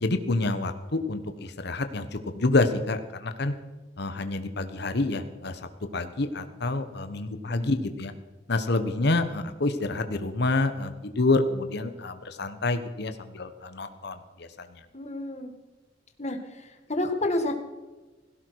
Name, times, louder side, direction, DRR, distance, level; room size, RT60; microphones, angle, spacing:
voice 1, 0.0-3.5 4.0-5.6 5.9-8.1 8.5-14.7, left 2 dB, 65° left, 9 dB, 1.2 m, -28 dB
voice 2, 14.9-15.5 16.2-17.5, left 1 dB, 40° left, 5 dB, 2.1 m, -30 dB
17.0 x 17.0 x 4.7 m, 1.2 s
head